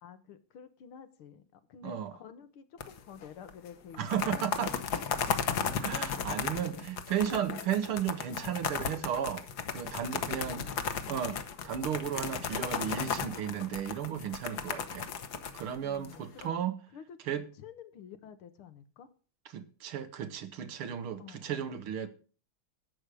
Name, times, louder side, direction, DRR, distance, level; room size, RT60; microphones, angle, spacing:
voice 1, 0.0-5.4 6.7-6.9 10.2-10.8 15.8-16.6 16.9-19.1 21.2-21.7, left 8 dB, 80° left, 2.1 m, -50 dB
voice 2, 1.8-2.1 4.0-4.7 5.8-9.5 9.7-10.6 11.1-11.4 11.6-15.1 15.5-16.7 17.3-17.4 19.5-22.1, right 9 dB, 80° right, 2.1 m, -34 dB
sound 1, 2.8-3.2 3.5-3.6 3.9-16.4, left 7 dB, 55° left, 1.4 m, -35 dB
11.5 x 8.4 x 6.2 m
omnidirectional pair, 2.3 m